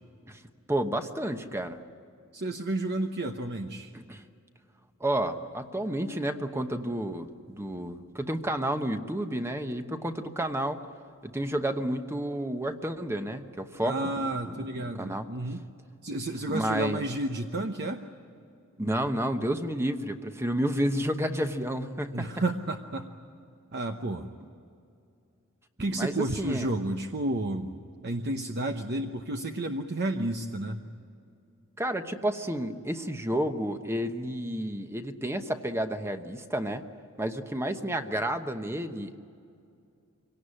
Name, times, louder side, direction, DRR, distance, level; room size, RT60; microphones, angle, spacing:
voice 1, 0.7-1.8 3.9-4.2 5.0-10.8 11.2-14.1 14.5-14.6 15.0-15.3 16.5-17.1 18.8-22.3 25.9-26.7 31.8-36.8 37.2-39.2, right 1 dB, 10° right, 7 dB, 1.0 m, -30 dB
voice 2, 2.3-3.9 13.8-15.6 16.0-18.0 22.1-23.1 23.7-24.3 25.8-27.7 28.0-30.8, right 1 dB, 50° right, 5 dB, 1.0 m, -31 dB
25.0 x 18.0 x 10.0 m, 2.4 s
head